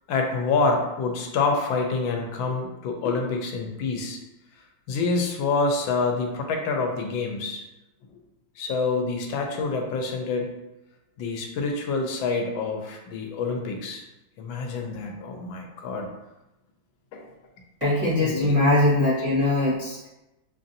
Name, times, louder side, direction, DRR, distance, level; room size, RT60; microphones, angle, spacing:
voice 1, 0.1-4.2 4.9-7.6 8.6-10.5 11.2-14.0 14.4-16.1 17.1-17.2 18.2-18.5, left 4 dB, 80° left, 2 dB, 1.4 m, -27 dB
voice 2, 17.8-20.1, left 2 dB, 25° right, -11 dB, 0.9 m, -21 dB
5.5 x 2.5 x 2.6 m, 0.97 s
omnidirectional pair, 2.1 m